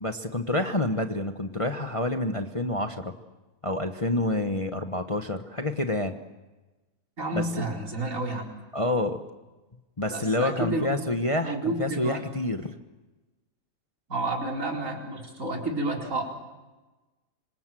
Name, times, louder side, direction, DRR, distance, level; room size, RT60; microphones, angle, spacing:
voice 1, 0.0-3.1 3.6-6.1 7.3-7.4 8.7-9.2 10.0-12.7, left 1 dB, 25° left, 6 dB, 1.2 m, -28 dB
voice 2, 7.2-8.4 10.1-11.0 11.4-12.2 14.1-16.2, right 2 dB, 60° right, 0 dB, 4.8 m, -30 dB
26.5 x 26.0 x 7.7 m, 1.1 s
omnidirectional pair, 1.6 m